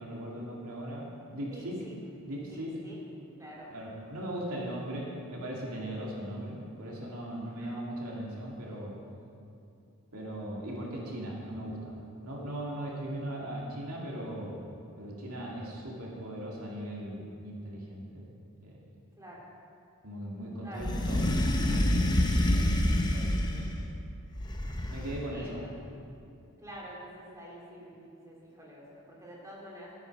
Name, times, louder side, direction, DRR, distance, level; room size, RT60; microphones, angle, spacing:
voice 1, 0.0-1.7 2.2-2.7 3.7-9.0 10.1-11.9 12.2-14.6 15.0-18.3 18.6-18.8 20.0-23.9 24.9-25.6, right 1 dB, 80° right, -3 dB, 2.4 m, -39 dB
voice 2, 1.5-2.0 2.5-3.0 3.4-3.7 7.5-7.8 19.2-19.4 20.6-21.2 23.4-23.5 25.3-25.9 26.6-29.9, equal, 15° right, -5 dB, 2.5 m, -47 dB
sound 1, 20.8-23.8 24.4-25.3, left 1 dB, 20° left, 0.7 m, -27 dB
12.5 x 8.9 x 6.1 m, 2.5 s
head